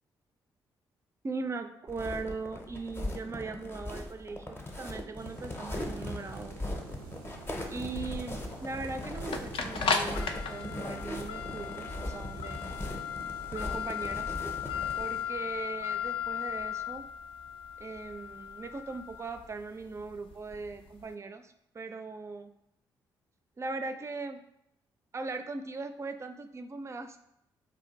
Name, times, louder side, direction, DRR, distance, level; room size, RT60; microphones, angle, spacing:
voice 1, 1.2-6.6 7.7-12.6 13.5-14.4 15.0-17.1 17.8-22.5 23.6-24.4 25.1-27.2, right 3 dB, 25° right, 9 dB, 0.4 m, -39 dB
sound 1, 1.9-15.0, left 1 dB, 20° left, 0.7 m, -39 dB
sound 2, 5.2-15.2, right 3 dB, 90° right, 0.4 m, -49 dB
sound 3, 6.9-21.0, left 7 dB, 55° left, 0.4 m, -36 dB
2.5 x 2.2 x 3.9 m, 0.76 s
hypercardioid pair, 45°, 11 cm